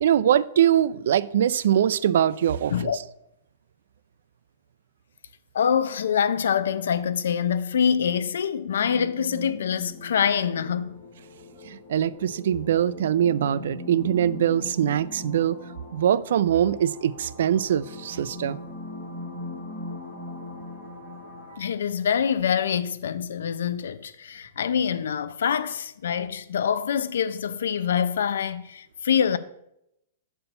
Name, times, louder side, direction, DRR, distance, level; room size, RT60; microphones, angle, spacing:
voice 1, 0.0-3.0 11.7-15.6 15.9-18.6 21.5-21.7, right 10 dB, 60° right, 0.3 m, -23 dB
voice 2, 5.5-11.0 21.6-29.4, left 7 dB, 80° left, 0.5 m, -25 dB
sound 1, 8.8-21.5, left 2 dB, ahead, 2.1 m, -40 dB
6.8 x 4.4 x 6.6 m
hypercardioid pair, 175°, 0 cm